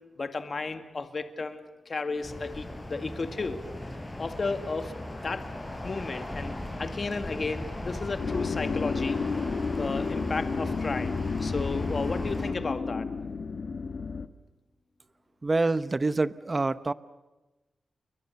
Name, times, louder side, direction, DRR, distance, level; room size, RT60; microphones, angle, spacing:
voice 1, 0.2-3.6 4.2-4.9 5.2-5.5 5.8-6.5 6.8-9.2 9.8-13.1, left 3 dB, 45° left, 8 dB, 1.9 m, -33 dB
sound 1, 2.2-12.5, left 1 dB, 20° left, 5.5 m, -37 dB
sound 2, 8.2-14.3, left 5 dB, 65° left, 1.4 m, -31 dB
voice 2, 15.4-16.9, right 3 dB, 30° right, 14 dB, 0.9 m, -26 dB
30.0 x 22.5 x 6.9 m, 1.1 s
cardioid pair, 75°, 0 cm